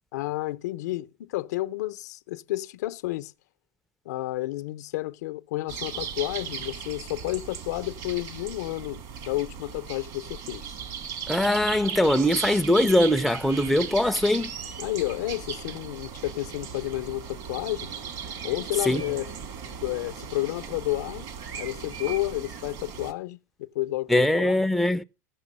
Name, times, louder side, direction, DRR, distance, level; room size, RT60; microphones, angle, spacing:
voice 1, 0.1-3.3 4.1-10.8 14.8-17.9 18.4-19.3 19.7-21.3 21.5-24.6, left 17 dB, 75° left, 0.6 m, -31 dB
sound 1, 5.7-23.1, right 7 dB, 50° right, 1.6 m, -37 dB
voice 2, 11.3-14.5 18.9-19.0 24.1-25.0, left 1 dB, ahead, 0.5 m, -22 dB
15.0 x 6.0 x 5.4 m
hypercardioid pair, 105°, 9 cm